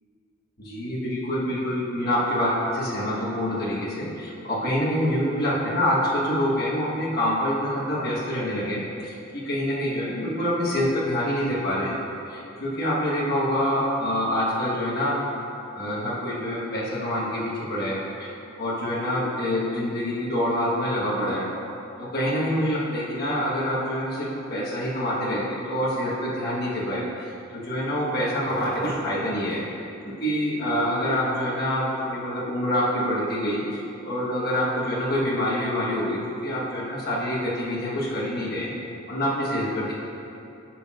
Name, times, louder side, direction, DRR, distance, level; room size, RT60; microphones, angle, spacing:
voice 1, 0.6-12.0 12.3-15.2 15.7-18.3 18.6-21.5 22.0-27.3 27.5-29.6 30.2-38.7 39.1-39.9, equal, 45° left, -8 dB, 1.2 m, -26 dB
11.5 x 5.8 x 2.4 m, 2.9 s
head